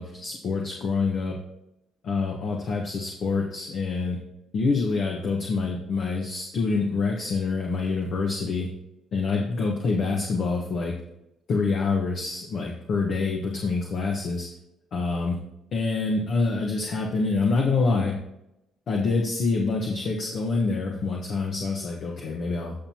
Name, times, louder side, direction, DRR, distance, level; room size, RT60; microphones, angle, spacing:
voice 1, 0.0-1.4 2.0-4.2 4.5-8.7 9.1-10.9 11.5-14.5 14.9-15.4 15.7-18.1 18.9-22.7, left 4 dB, 60° left, 0 dB, 1.4 m, -26 dB
15.5 x 5.8 x 3.0 m, 0.88 s
supercardioid pair, 70°, 0 cm